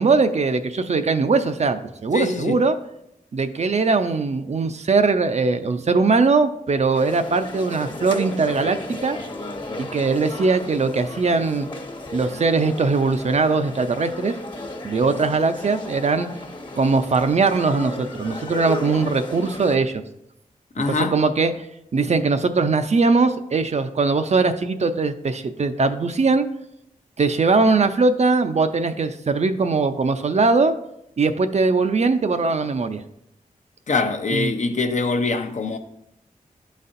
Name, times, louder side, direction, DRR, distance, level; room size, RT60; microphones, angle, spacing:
voice 1, 0.0-2.8 3.3-9.2 9.8-11.7 12.1-14.4 14.8-16.3 16.8-20.0 20.8-21.7 21.9-26.5 27.2-30.8 31.2-33.0 34.3-34.5, right 4 dB, 50° right, 0.5 m, -20 dB
voice 2, 2.1-2.6 20.8-21.1 33.9-35.8, left 3 dB, 55° left, 0.6 m, -23 dB
sound 1, 6.9-19.8, left 2 dB, 35° left, 1.0 m, -34 dB
11.0 x 4.1 x 2.6 m
wide cardioid pair, 65°, 14 cm